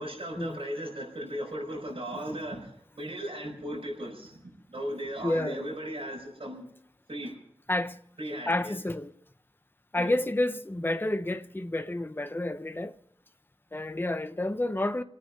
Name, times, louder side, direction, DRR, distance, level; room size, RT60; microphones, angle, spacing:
voice 1, 0.0-6.7 7.1-7.4 8.2-8.8 9.9-10.1, equal, 85° right, 5.4 m, -37 dB
voice 2, 5.2-5.6 7.7-8.0 8.5-9.1 9.9-13.0 13.7-15.0, left 1 dB, 25° left, 0.8 m, -30 dB
27.5 x 9.3 x 5.4 m
wide cardioid pair, 60°, 9 cm